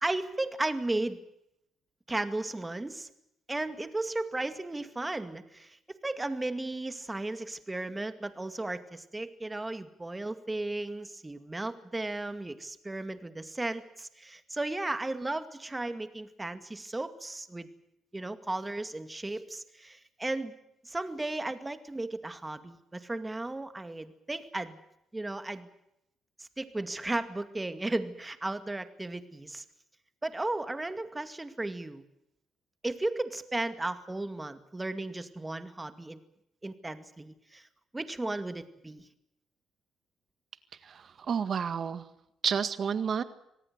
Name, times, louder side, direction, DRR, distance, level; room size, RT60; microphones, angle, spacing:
voice 1, 0.0-1.2 2.1-3.1 3.5-17.7 18.1-20.5 20.8-24.8 25.1-25.7 26.4-29.6 30.2-32.0 32.8-36.2 36.6-37.7 37.9-39.1, right 2 dB, 15° right, 10 dB, 2.2 m, -35 dB
voice 2, 40.8-42.1 42.4-43.2, right 7 dB, 55° right, 12 dB, 1.9 m, -30 dB
26.0 x 18.5 x 8.1 m, 0.80 s
cardioid pair, 90°, 0 cm